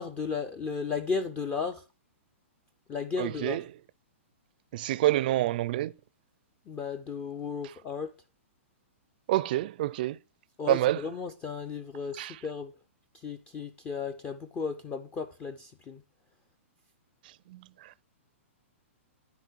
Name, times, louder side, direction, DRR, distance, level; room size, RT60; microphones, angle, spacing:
voice 1, 0.0-1.8 2.9-3.6 6.7-8.1 10.6-12.7 13.2-16.0, left 5 dB, 15° left, 0.5 m, -34 dB
voice 2, 3.2-3.7 4.7-5.9 9.3-10.2 10.7-11.0 12.2-12.4 17.5-18.0, right 15 dB, 40° right, 0.4 m, -28 dB
10.0 x 8.1 x 4.6 m
hypercardioid pair, 160°, 7 cm